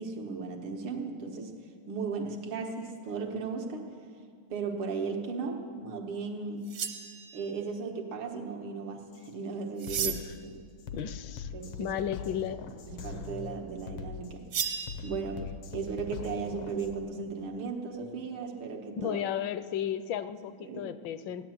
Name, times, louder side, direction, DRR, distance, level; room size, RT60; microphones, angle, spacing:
voice 1, 0.0-1.5 1.9-3.9 4.5-6.7 7.3-10.2 11.5-12.0 12.9-14.5 15.0-19.2 20.6-21.0, right 4 dB, 90° right, 3 dB, 2.1 m, -36 dB
sound 1, 6.7-7.6 9.8-10.5 14.5-15.0, right 8 dB, 75° right, 1.8 m, -34 dB
Drum kit, 9.1-9.3 9.8-17.0, left 6 dB, 90° left, 1.9 m, -42 dB
voice 2, 10.0-10.3 10.9-11.5 11.8-12.7 19.0-21.5, left 9 dB, 75° left, 13 dB, 1.2 m, -34 dB
17.0 x 10.0 x 7.8 m, 2.1 s
omnidirectional pair, 2.3 m